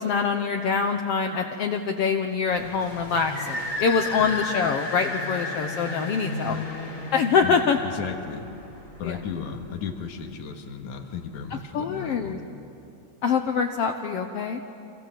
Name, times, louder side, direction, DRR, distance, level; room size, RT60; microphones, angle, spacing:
voice 1, 0.0-6.6 7.1-7.8 9.0-9.2 11.7-12.4 13.2-14.6, left 5 dB, 65° left, 4 dB, 1.8 m, -24 dB
sound 1, 2.5-9.8, left 2 dB, 20° left, 2.5 m, -34 dB
voice 2, 7.4-8.5 9.0-12.4, left 6 dB, 85° left, 5 dB, 3.1 m, -35 dB
29.5 x 26.0 x 7.7 m, 2.8 s
omnidirectional pair, 3.3 m